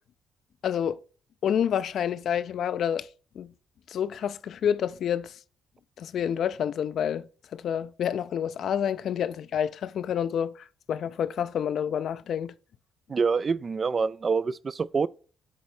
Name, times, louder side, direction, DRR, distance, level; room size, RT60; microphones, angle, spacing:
voice 1, 0.6-1.0 1.4-3.1 3.4-3.5 3.9-5.3 6.0-12.5, left 9 dB, 65° left, 0.4 m, -28 dB
voice 2, 13.1-15.1, right 5 dB, 35° right, 0.3 m, -26 dB
8.2 x 3.2 x 6.0 m
cardioid pair, 90°, 0 cm